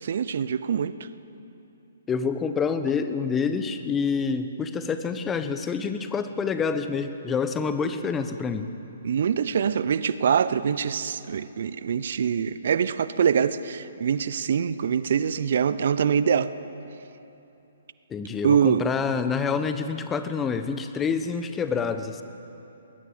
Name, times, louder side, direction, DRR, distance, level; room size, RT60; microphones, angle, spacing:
voice 1, 0.0-1.1 9.0-16.5 18.4-18.8, right 7 dB, 55° right, 15 dB, 0.7 m, -24 dB
voice 2, 2.1-8.7 18.1-22.2, left 5 dB, 15° left, 10 dB, 1.1 m, -27 dB
20.5 x 19.0 x 7.9 m, 2.9 s
figure-of-eight pair, 125°, 0 cm